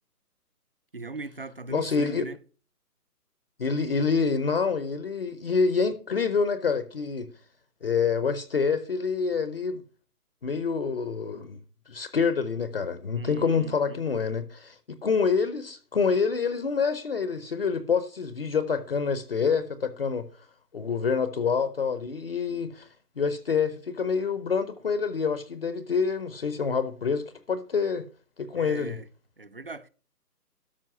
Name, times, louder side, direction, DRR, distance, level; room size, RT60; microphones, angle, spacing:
voice 1, 0.9-2.4 13.2-14.0 28.6-29.1 29.4-29.9, right 3 dB, 40° right, 0.4 m, -39 dB
voice 2, 1.7-2.2 3.6-7.3 7.8-9.8 10.4-11.6 11.9-20.3 20.7-22.9 23.2-28.1 28.4-29.0, left 5 dB, 40° left, 0.7 m, -27 dB
12.5 x 5.3 x 5.4 m
hypercardioid pair, 155°, 47 cm